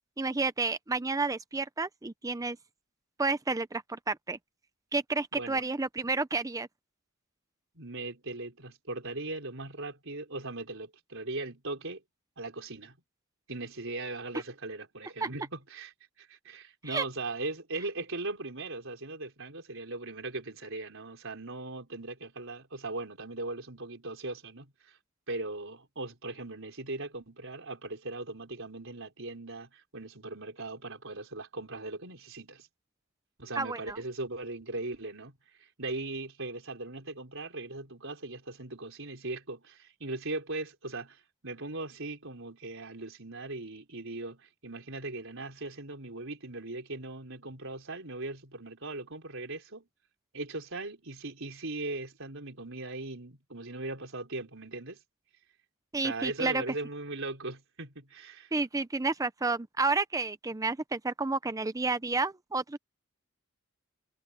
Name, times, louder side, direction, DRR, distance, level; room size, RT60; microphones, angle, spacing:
voice 1, 0.2-2.6 3.2-4.4 4.9-6.7 15.2-15.3 16.9-17.0 33.6-34.0 55.9-56.6 58.5-62.8, right 3 dB, 15° right, 0.6 m, -30 dB
voice 2, 5.3-5.6 7.7-12.0 12.4-13.0 13.5-15.9 16.2-25.0 25.3-32.7 33.4-49.8 50.3-55.0 56.0-58.5, right 2 dB, 65° right, 5.1 m, -39 dB
head